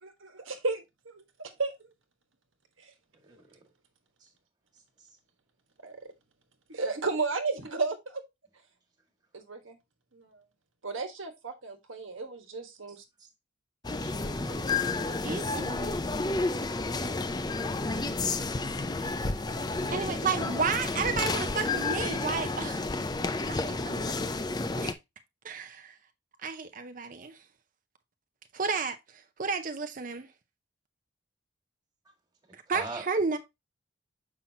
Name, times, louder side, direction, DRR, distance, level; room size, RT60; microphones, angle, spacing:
voice 1, 0.0-1.7 2.8-2.9 5.8-6.0 6.7-8.2 9.3-9.8 10.1-10.4 10.8-13.0, right 4 dB, 75° right, 1.4 m, -34 dB
sound 1, 13.8-24.9, left 3 dB, 20° left, 0.4 m, -31 dB
voice 2, 14.0-15.2 19.1-19.5 32.7-33.0, right 2 dB, 20° right, 1.7 m, -44 dB
voice 3, 15.2-16.0 19.9-22.9 23.5-24.3 24.8-25.0 25.4-26.0 26.4-27.4 28.5-29.0 29.4-30.3 32.5-33.4, right 5 dB, 40° right, 0.6 m, -32 dB
7.2 x 5.7 x 2.8 m
head